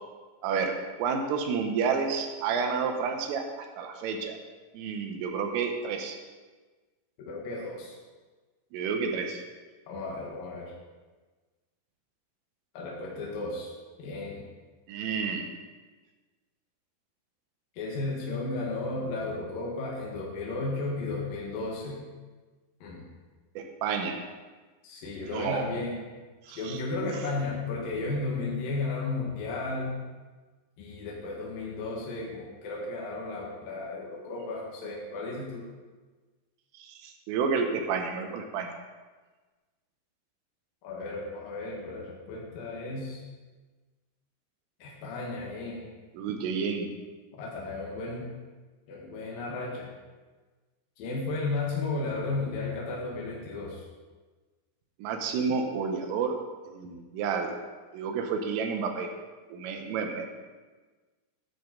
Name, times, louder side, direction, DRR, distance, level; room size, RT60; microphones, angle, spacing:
voice 1, 0.4-4.4 4.7-6.2 8.7-9.4 14.9-15.5 23.6-24.2 25.3-25.7 26.5-27.1 36.7-38.7 46.2-46.9 55.0-56.4 56.7-57.6 57.9-59.1 59.5-60.2, right 5 dB, 90° right, 4 dB, 3.8 m, -30 dB
voice 2, 7.2-8.0 9.9-10.7 12.7-13.7 14.0-14.4 17.8-22.0 22.8-23.1 24.8-26.0 26.6-30.0 30.8-35.7 40.8-43.2 44.8-45.9 47.4-48.3 48.9-49.9 51.0-53.8, left 3 dB, 60° left, -3 dB, 2.8 m, -34 dB
13.5 x 10.0 x 4.0 m, 1.3 s
omnidirectional pair, 5.6 m